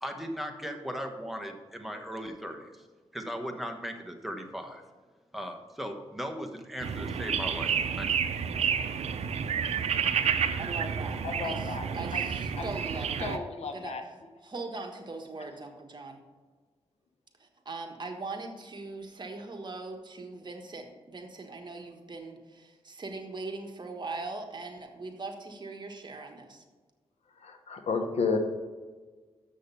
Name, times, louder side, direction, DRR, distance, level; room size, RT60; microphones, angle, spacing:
voice 1, 0.0-2.8 3.1-4.8 5.3-8.3, equal, ahead, 4 dB, 1.3 m, -38 dB
sound 1, 6.8-13.4, right 7 dB, 90° right, 0.5 m, -30 dB
voice 2, 10.6-11.2 11.4-14.1 14.4-16.2 17.4-26.6, right 3 dB, 45° right, 3 dB, 1.4 m, -40 dB
voice 3, 11.2-11.8 12.1-12.2 12.6-12.7 13.2-14.0 27.4-28.4, left 4 dB, 90° left, 5 dB, 1.1 m, -32 dB
7.3 x 6.4 x 6.8 m, 1.4 s
cardioid pair, 80°, 11 cm